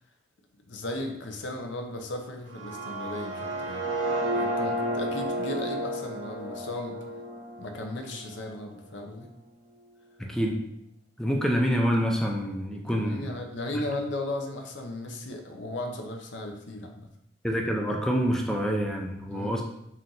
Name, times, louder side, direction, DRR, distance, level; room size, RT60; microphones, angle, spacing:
voice 1, 0.7-3.9 4.3-7.0 7.6-9.3 12.8-17.1 19.3-19.6, left 1 dB, 70° left, 3 dB, 0.6 m, -36 dB
sound 1, 2.5-8.4, right 1 dB, 80° right, 0.7 m, -32 dB
voice 2, 10.2-10.6 11.2-13.3 17.4-19.6, equal, 5° left, 1 dB, 0.4 m, -26 dB
4.3 x 2.5 x 3.8 m, 0.77 s
head